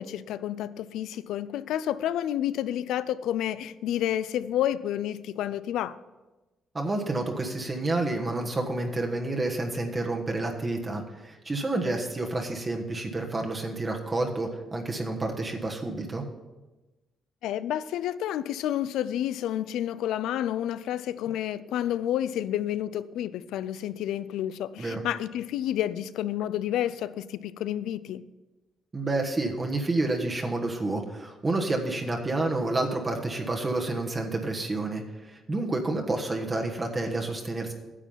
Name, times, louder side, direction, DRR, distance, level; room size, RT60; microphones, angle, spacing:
voice 1, 0.0-6.0 17.4-28.2, left 11 dB, 85° left, 16 dB, 0.4 m, -30 dB
voice 2, 6.7-16.2 24.8-25.0 28.9-37.7, right 2 dB, 25° right, 2 dB, 1.3 m, -29 dB
10.0 x 7.2 x 5.6 m, 1.1 s
cardioid pair, 90°, 0 cm